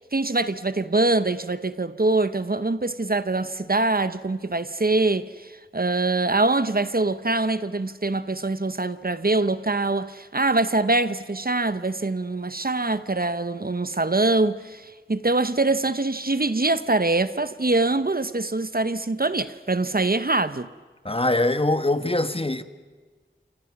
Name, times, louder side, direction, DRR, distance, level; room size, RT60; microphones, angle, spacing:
voice 1, 0.1-5.3 5.7-14.8 15.1-20.7, right 2 dB, 50° right, 0.9 m, -24 dB
voice 2, 21.0-22.6, left 2 dB, 30° left, 1.2 m, -23 dB
29.0 x 28.0 x 6.0 m
wide cardioid pair, 45°, 20 cm